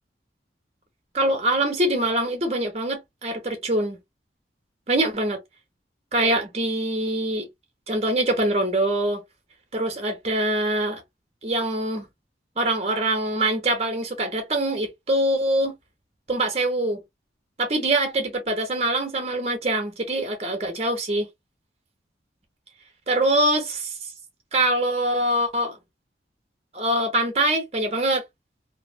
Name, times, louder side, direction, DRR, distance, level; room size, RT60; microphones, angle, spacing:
voice 1, 1.1-4.0 4.9-5.4 6.1-7.5 7.9-9.2 9.7-11.0 11.4-12.1 12.6-15.8 16.3-17.0 17.6-21.3 23.1-23.9 24.5-25.8 26.7-28.2, right 1 dB, 35° right, 1.0 m, -24 dB
3.2 x 2.1 x 2.3 m
head